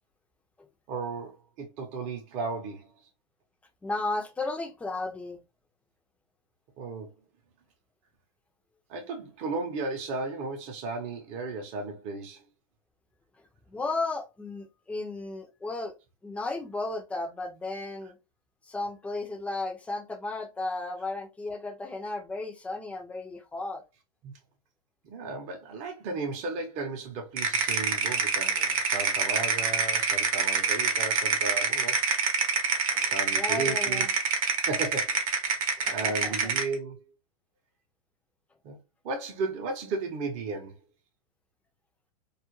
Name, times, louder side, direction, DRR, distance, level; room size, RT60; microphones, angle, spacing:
voice 1, 0.9-2.9 6.8-7.1 8.9-12.5 24.2-24.3 25.0-32.0 33.0-34.1 34.7-35.2 35.5-35.6 35.9-37.0 38.6-38.8 39.0-40.8, right 3 dB, 40° right, 0.7 m, -35 dB
voice 2, 3.8-5.4 13.7-15.9 16.2-18.2 18.6-23.8 32.9-34.1 35.8-36.5, left 2 dB, 5° left, 0.5 m, -34 dB
sound 1, 27.4-36.7, right 5 dB, 70° right, 0.8 m, -26 dB
2.3 x 2.1 x 3.0 m
hypercardioid pair, 120°, 18 cm